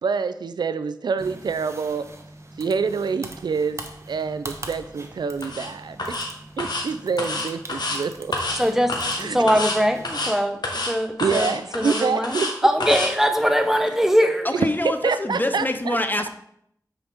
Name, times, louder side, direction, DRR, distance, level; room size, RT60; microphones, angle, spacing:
voice 1, 0.0-2.1 2.6-6.2 6.6-8.4 9.2-9.5 11.2-12.5 14.5-16.0, right 5 dB, 85° right, 0.4 m, -26 dB
sound 1, 1.2-10.3, right 1 dB, 40° right, 1.0 m, -42 dB
sound 2, 5.4-5.7 6.0-6.3 6.6-6.8 7.2-8.0 8.3-8.6 8.9-9.2 9.5-9.8 10.0-10.3 10.6-10.9 11.2-12.5 12.8-13.1, left 2 dB, 80° left, 1.4 m, -27 dB
voice 2, 8.6-12.4 12.6-14.5, equal, 5° right, 0.9 m, -22 dB
voice 3, 14.4-16.3, left 1 dB, 25° left, 0.7 m, -25 dB
8.7 x 5.0 x 3.5 m
cardioid pair, 45°, 7 cm